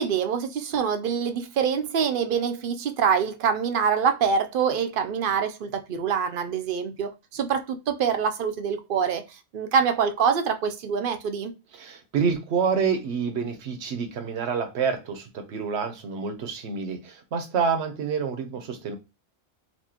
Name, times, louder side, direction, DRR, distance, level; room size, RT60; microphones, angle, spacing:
voice 1, 0.0-11.5, right 6 dB, 60° right, 0.6 m, -25 dB
voice 2, 11.7-19.0, right 6 dB, 80° right, 1.0 m, -28 dB
4.3 x 2.7 x 2.8 m
omnidirectional pair, 1.1 m